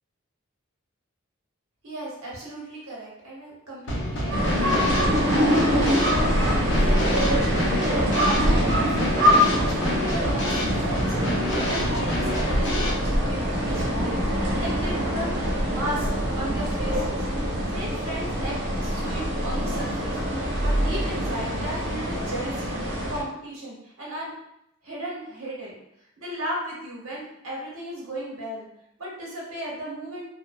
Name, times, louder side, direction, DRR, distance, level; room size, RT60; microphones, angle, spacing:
voice 1, 1.8-20.2 20.6-24.3 24.8-25.8 26.2-28.7 29.0-30.3, right 1 dB, 85° right, -5 dB, 1.0 m, -36 dB
Drum kit / Snare drum, 3.9-12.9, left 1 dB, 60° left, 0.5 m, -28 dB
sound 1, 4.3-23.2, equal, 60° right, 0.6 m, -24 dB
2.6 x 2.1 x 2.3 m, 0.78 s
head